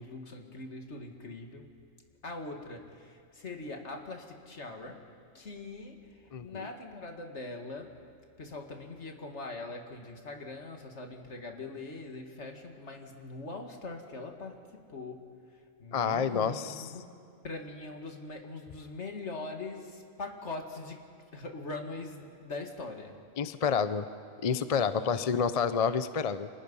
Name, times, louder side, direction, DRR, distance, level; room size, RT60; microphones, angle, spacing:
voice 1, 0.0-1.7 2.2-5.0 5.3-8.0 8.4-15.3 15.8-17.1 17.4-21.0 21.3-23.2 25.0-25.6, left 3 dB, 60° left, 3 dB, 2.3 m, -42 dB
voice 2, 6.3-6.7 15.9-16.7 23.4-24.1 24.4-26.5, left 6 dB, 40° left, 12 dB, 0.5 m, -29 dB
29.5 x 25.5 x 5.5 m, 2.3 s
omnidirectional pair, 1.4 m